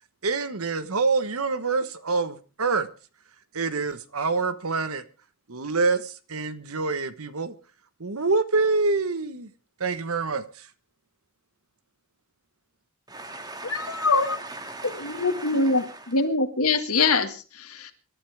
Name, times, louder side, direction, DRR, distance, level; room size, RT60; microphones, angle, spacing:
voice 1, 0.2-2.9 3.5-5.0 5.5-7.5 8.0-9.5 9.8-10.7, right 4 dB, 80° right, 1.3 m, -26 dB
voice 2, 13.1-16.2, right 2 dB, 20° right, 2.1 m, -39 dB
voice 3, 13.6-14.4 14.8-17.9, left 3 dB, 85° left, 1.9 m, -24 dB
25.5 x 12.5 x 3.5 m
head